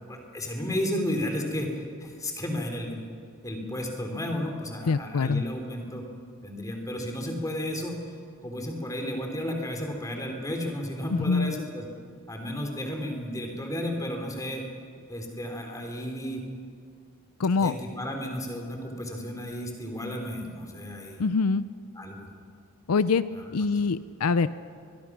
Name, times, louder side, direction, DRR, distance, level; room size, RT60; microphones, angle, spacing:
voice 1, 0.1-3.0 3.4-6.1 6.4-8.0 8.4-11.9 12.3-14.6 15.1-16.4 17.6-21.2 21.9-22.3 23.3-23.8, left 1 dB, 15° left, 2 dB, 3.1 m, -33 dB
voice 2, 4.9-5.4 11.1-11.6 17.4-17.7 21.2-21.6 22.9-23.2 23.5-24.5, left 4 dB, 85° left, 14 dB, 0.5 m, -24 dB
23.0 x 22.0 x 6.1 m, 2.2 s
head